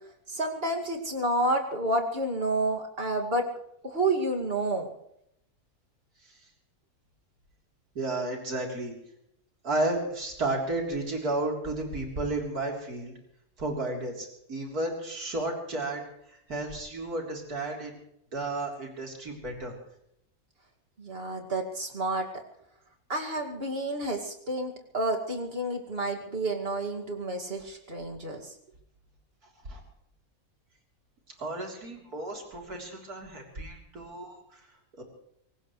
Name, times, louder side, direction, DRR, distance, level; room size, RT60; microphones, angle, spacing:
voice 1, 0.3-3.5 3.8-4.9 21.0-22.4 23.1-28.5, right 2 dB, 40° right, 2 dB, 2.5 m, -30 dB
voice 2, 8.0-8.9 9.6-13.1 13.6-16.0 16.3-18.0 18.3-19.7 29.7-29.8 31.4-34.6 35.0-35.1, right 2 dB, 80° right, 1 dB, 4.2 m, -32 dB
24.0 x 19.0 x 3.2 m, 0.76 s
omnidirectional pair, 1.6 m